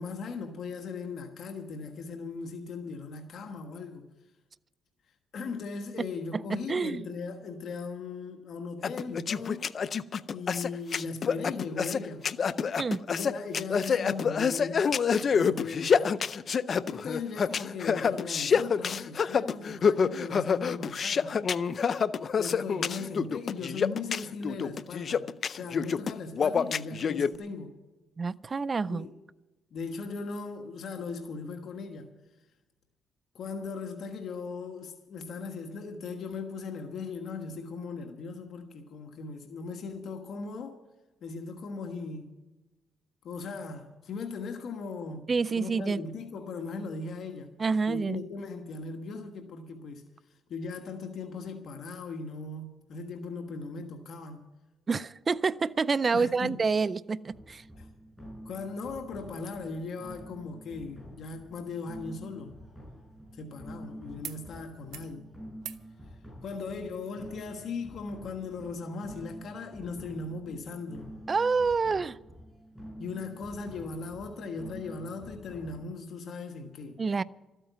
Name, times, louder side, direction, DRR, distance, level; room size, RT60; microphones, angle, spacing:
voice 1, 0.0-4.1 5.3-9.7 10.3-12.2 13.1-16.2 16.9-21.4 22.4-25.2 25.5-27.7 28.9-29.1 29.7-32.1 33.3-40.8 41.2-42.3 43.2-45.3 45.5-47.5 47.9-54.4 56.1-56.5 57.8-57.9 58.4-62.5 63.3-65.3 66.4-71.1 73.0-77.0, left 4 dB, 65° left, 1.4 m, -38 dB
voice 2, 6.3-7.1 12.8-13.0 28.2-29.1 45.3-46.0 47.6-48.2 54.9-57.6 71.3-72.2 77.0-77.2, right 4 dB, 35° right, 0.4 m, -28 dB
sound 1, 8.8-27.3, left 6 dB, 50° left, 0.5 m, -27 dB
sound 2, 57.3-75.8, equal, ahead, 5.6 m, -48 dB
sound 3, 62.0-63.8 64.2-64.4 64.7-65.1 65.6-65.9 67.2-67.3, right 11 dB, 80° right, 0.7 m, -46 dB
13.5 x 8.9 x 9.2 m
cardioid pair, 90°, 0 cm